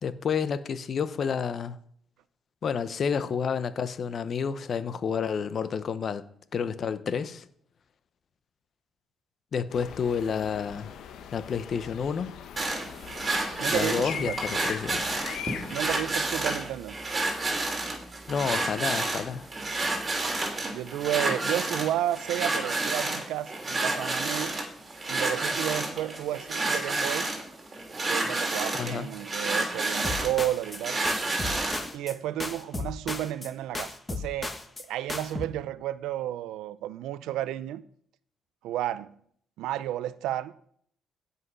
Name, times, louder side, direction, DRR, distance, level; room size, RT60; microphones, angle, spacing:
voice 1, 0.0-1.8 2.6-6.2 6.5-7.4 9.5-10.9 11.3-12.3 13.7-15.1 18.3-19.5 28.7-29.1, left 6 dB, 55° left, 0.9 m, -30 dB
sound 1, 9.7-16.0, left 8 dB, 75° left, 1.0 m, -40 dB
sound 2, 12.6-31.9, right 2 dB, 30° right, 2.9 m, -30 dB
voice 2, 13.6-14.4 15.7-17.0 20.7-24.6 25.1-27.3 28.1-31.0 31.9-34.5 34.8-37.8 38.6-39.1 39.6-40.5, right 12 dB, 90° right, 0.5 m, -32 dB
sound 3, 30.0-30.8 31.1-32.2 32.4-33.5 33.7-34.8 35.1-35.5, left 3 dB, 20° left, 1.3 m, -35 dB
16.0 x 5.6 x 5.5 m
cardioid pair, 90°, 0 cm